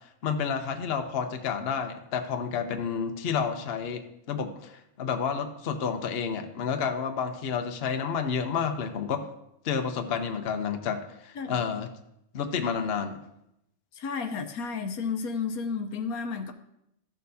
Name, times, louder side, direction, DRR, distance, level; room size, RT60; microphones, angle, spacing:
voice 1, 0.2-9.2 9.6-11.9 12.3-13.2, left 6 dB, 50° left, 6 dB, 0.9 m, -30 dB
voice 2, 13.9-16.5, left 5 dB, 85° left, 7 dB, 1.2 m, -32 dB
14.5 x 6.5 x 2.7 m, 0.82 s
omnidirectional pair, 1.5 m